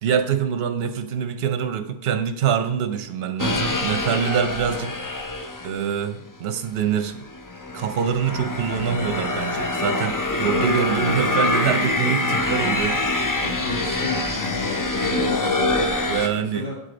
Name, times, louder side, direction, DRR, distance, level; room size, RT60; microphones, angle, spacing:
voice 1, 0.0-4.9 5.6-7.2 7.7-13.3 16.1-16.7, right 8 dB, 70° right, 8 dB, 0.9 m, -25 dB
sound 1, 3.4-5.9 6.7-16.3, left 2 dB, 25° left, 0.4 m, -25 dB
voice 2, 13.4-16.8, left 4 dB, 90° left, -6 dB, 3.6 m, -33 dB
7.9 x 5.0 x 3.9 m, 0.77 s
omnidirectional pair, 1.1 m